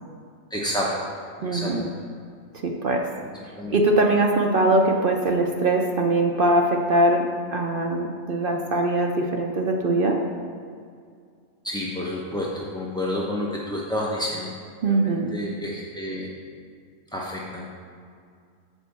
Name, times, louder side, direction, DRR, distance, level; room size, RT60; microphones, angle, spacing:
voice 1, 0.5-0.9 1.4-1.7 3.6-3.7 11.6-14.5 14.8-16.3 17.1-17.7, left 1 dB, 5° left, -5 dB, 0.4 m, -29 dB
voice 2, 1.4-1.8 2.6-3.1 3.7-10.2 14.8-15.3, right 2 dB, 60° right, 2 dB, 0.5 m, -22 dB
7.3 x 4.4 x 6.7 m, 2.2 s
omnidirectional pair, 1.5 m